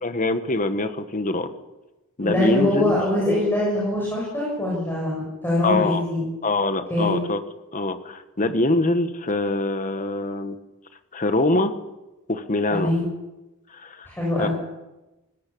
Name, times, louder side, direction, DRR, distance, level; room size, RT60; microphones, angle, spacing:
voice 1, 0.0-1.5 2.2-3.0 5.6-6.0 6.4-7.4 7.7-10.6 11.1-11.7 12.3-12.9 13.7-14.5, left 2 dB, 35° left, 9 dB, 1.4 m, -24 dB
voice 2, 2.2-6.3 6.9-7.1 12.7-13.0 14.1-14.5, left 1 dB, 10° left, -5 dB, 6.8 m, -23 dB
18.5 x 17.0 x 8.6 m, 1.0 s
head